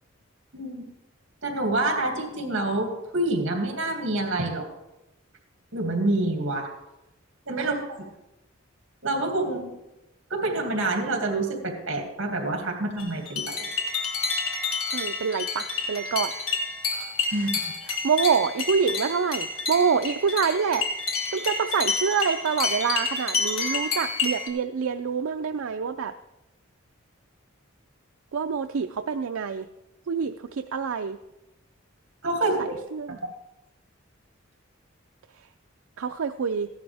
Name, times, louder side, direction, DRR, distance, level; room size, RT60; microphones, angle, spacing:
voice 1, 0.5-0.9 1.4-4.7 5.7-6.7 7.5-8.1 9.0-9.7 10.3-13.7 17.3-17.5 32.2-32.8, right 2 dB, 60° right, 2 dB, 2.4 m, -27 dB
sound 1, 13.0-24.5, left 4 dB, 75° left, 1.6 m, -29 dB
voice 2, 14.9-16.3 16.9-20.9 21.3-26.1 28.3-29.7 30.1-31.2 32.6-33.2 36.0-36.7, right 6 dB, 80° right, 8 dB, 0.4 m, -26 dB
15.0 x 11.0 x 3.5 m, 0.94 s
head